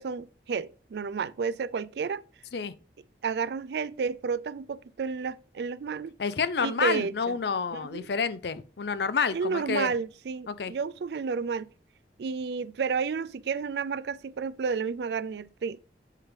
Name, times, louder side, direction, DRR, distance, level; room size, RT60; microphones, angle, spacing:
voice 1, 0.0-2.2 3.2-6.1 6.6-7.3 7.7-8.1 9.3-11.7 12.2-15.8, right 5 dB, 70° right, 0.4 m, -31 dB
voice 2, 6.2-9.9 10.5-10.7, left 5 dB, 70° left, 0.5 m, -29 dB
7.4 x 3.6 x 5.0 m
head